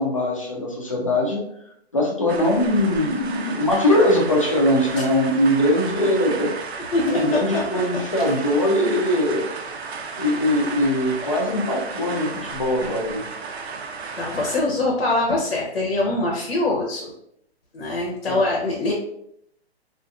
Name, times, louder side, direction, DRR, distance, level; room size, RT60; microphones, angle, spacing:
voice 1, 0.0-1.4 1.9-6.6 7.0-9.5 10.2-13.2 18.2-18.5, left 1 dB, 30° left, -2 dB, 0.4 m, -21 dB
sound 1, 2.3-14.6, right 5 dB, 75° right, 0.5 m, -33 dB
voice 2, 14.2-17.1 17.7-18.9, left 2 dB, 75° left, -2 dB, 0.8 m, -23 dB
2.5 x 2.5 x 2.3 m, 0.74 s
hypercardioid pair, 170°, 32 cm